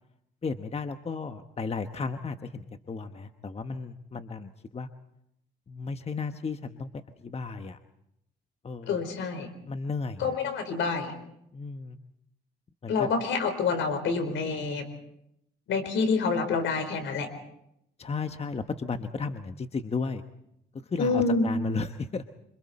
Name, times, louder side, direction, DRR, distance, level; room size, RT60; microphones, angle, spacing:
voice 1, 0.4-4.9 5.7-6.9 7.2-7.8 8.6-9.0 9.7-10.3 11.5-12.0 12.8-13.1 18.0-20.2 20.9-22.2, left 4 dB, 30° left, 8 dB, 1.2 m, -34 dB
voice 2, 8.9-9.5 10.2-11.1 12.9-14.9 15.7-17.3 21.0-21.5, left 4 dB, 75° left, 8 dB, 4.3 m, -27 dB
27.0 x 26.0 x 4.3 m, 0.78 s
cardioid pair, 90°, 20 cm